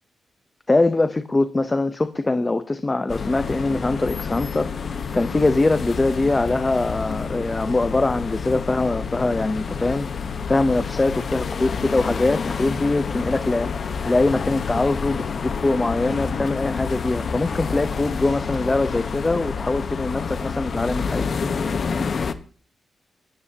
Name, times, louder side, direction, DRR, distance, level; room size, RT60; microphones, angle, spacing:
voice 1, 0.7-10.1 10.5-21.3, left 2 dB, 20° left, 10 dB, 0.8 m, -23 dB
sound 1, 3.1-22.3, left 5 dB, 50° left, 1.2 m, -28 dB
26.5 x 14.5 x 2.9 m, 0.42 s
cardioid pair, 100°, 0 cm